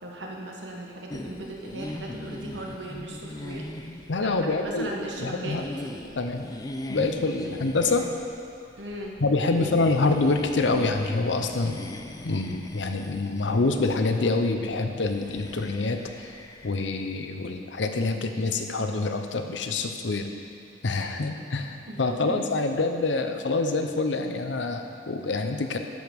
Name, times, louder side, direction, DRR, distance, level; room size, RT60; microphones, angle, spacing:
voice 1, 0.0-3.6 4.2-6.2 7.4-7.6 8.8-9.2 9.5-9.8 21.1-21.5 21.9-22.4, right 1 dB, 70° right, -1 dB, 1.3 m, -38 dB
sound 1, 1.1-16.9, left 1 dB, 20° left, 0.4 m, -40 dB
voice 2, 4.1-4.9 5.2-5.7 6.1-6.5 6.9-8.1 9.2-11.8 12.2-16.3 16.6-20.3 20.8-25.8, left 3 dB, 75° left, 6 dB, 0.7 m, -26 dB
12.5 x 5.1 x 5.2 m, 2.5 s
head